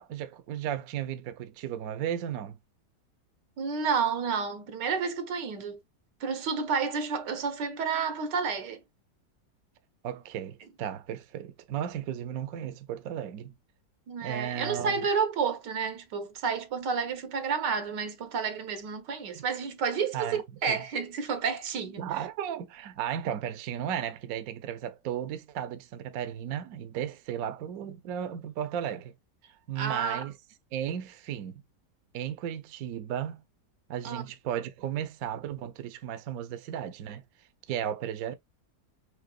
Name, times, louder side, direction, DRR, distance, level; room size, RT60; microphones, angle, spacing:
voice 1, 0.0-2.6 10.0-13.5 14.2-15.0 19.3-19.4 20.1-20.8 22.0-29.1 29.7-30.4 30.7-31.6 32.1-33.4 33.9-37.2 37.7-38.3, right 9 dB, 65° right, 1.0 m, -35 dB
voice 2, 3.6-5.8 6.2-8.8 14.1-22.0 29.8-30.2 34.0-34.3, right 6 dB, 85° right, 1.7 m, -30 dB
5.8 x 3.4 x 2.3 m
omnidirectional pair, 1.8 m